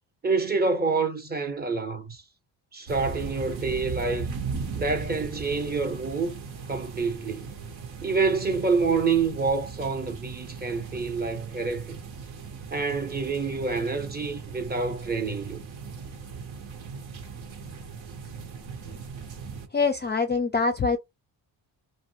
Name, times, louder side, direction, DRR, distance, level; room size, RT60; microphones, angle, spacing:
voice 1, 0.2-2.2 2.7-4.3 4.7-6.4 6.7-7.5 8.0-12.0 12.7-15.6, right 4 dB, 20° right, 0.6 m, -27 dB
sound 1, 2.9-19.7, right 5 dB, 85° right, 0.9 m, -38 dB
voice 2, 19.7-21.0, left 4 dB, 25° left, 0.3 m, -24 dB
2.5 x 2.1 x 2.7 m
cardioid pair, 75°, 46 cm